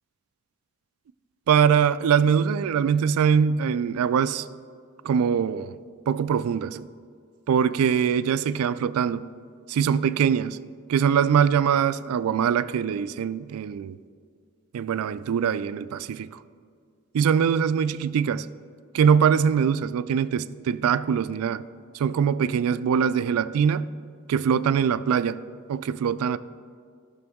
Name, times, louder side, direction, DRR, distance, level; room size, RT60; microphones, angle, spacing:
voice 1, 1.5-4.5 5.0-5.7 6.1-6.8 7.5-9.3 9.7-10.6 10.9-14.0 14.7-16.4 17.1-18.5 18.9-21.6 21.9-23.9 24.3-25.4 25.7-26.4, right 7 dB, 80° right, 0.3 m, -22 dB
14.0 x 6.1 x 3.5 m
head